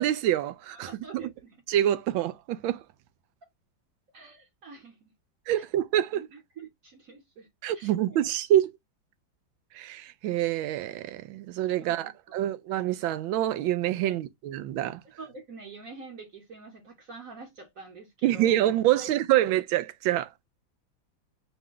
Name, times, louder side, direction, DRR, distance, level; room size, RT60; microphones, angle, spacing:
voice 1, 0.0-1.2 1.7-2.8 5.5-6.2 7.6-8.7 9.7-15.0 18.2-20.3, right 12 dB, 90° right, 1.4 m, -26 dB
voice 2, 0.7-1.6 4.1-5.1 6.1-7.5 7.7-8.2 11.8-12.1 14.0-14.2 15.2-18.5 18.9-19.2, right 4 dB, 55° right, 1.2 m, -46 dB
5.0 x 2.2 x 3.7 m
omnidirectional pair, 2.1 m